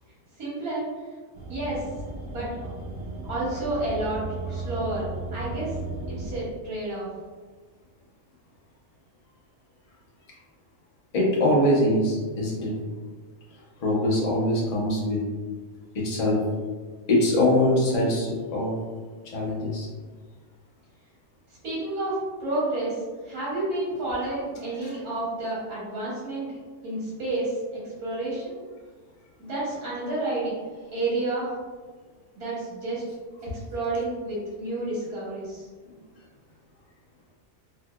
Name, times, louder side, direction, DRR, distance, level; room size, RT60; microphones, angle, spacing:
voice 1, 0.4-0.9 1.5-1.9 2.3-2.5 3.2-4.2 4.5-5.7 6.1-7.1 21.6-23.0 23.2-28.5 29.4-30.5 30.9-31.5 32.4-33.0 33.5-35.7, right 2 dB, 90° right, -8 dB, 1.6 m, -30 dB
sound 1, 1.3-6.4, right 2 dB, 65° right, 0.6 m, -35 dB
voice 2, 11.1-12.7 13.8-15.2 15.9-16.4 17.1-18.7 19.3-19.9, left 1 dB, 40° left, -4 dB, 0.5 m, -23 dB
3.2 x 2.7 x 2.3 m, 1.4 s
omnidirectional pair, 1.5 m